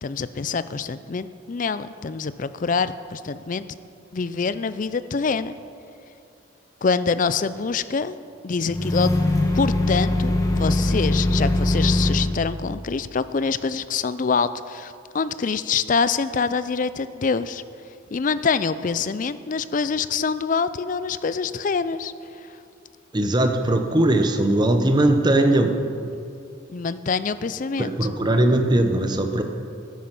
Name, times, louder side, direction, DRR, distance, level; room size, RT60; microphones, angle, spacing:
voice 1, 0.0-3.6 4.1-5.5 6.8-8.2 8.4-9.1 9.5-17.6 18.1-22.1 26.7-27.9, left 5 dB, 40° left, 14 dB, 0.4 m, -25 dB
sound 1, 8.6-12.3, left 1 dB, 15° left, 1.2 m, -21 dB
voice 2, 23.1-25.8 27.8-29.4, right 1 dB, 20° right, 6 dB, 0.8 m, -19 dB
13.0 x 10.0 x 6.0 m, 2.6 s
head